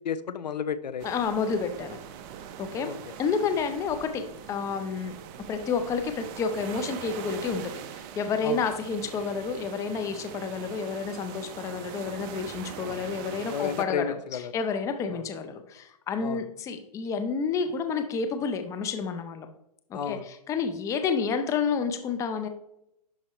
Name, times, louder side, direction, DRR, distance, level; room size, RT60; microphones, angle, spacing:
voice 1, 0.0-1.1 2.8-3.1 8.4-8.6 13.5-14.5 15.1-15.2 16.2-16.4 19.9-20.3, left 7 dB, 85° left, 15 dB, 0.6 m, -32 dB
voice 2, 1.0-2.0 2.6-2.9 3.2-5.1 5.5-19.5 19.9-22.5, left 5 dB, 15° left, 8 dB, 0.6 m, -30 dB
sound 1, 1.0-13.8, right 8 dB, 30° right, 0.6 m, -42 dB
11.5 x 4.3 x 3.0 m, 0.81 s
hypercardioid pair, 140°, 21 cm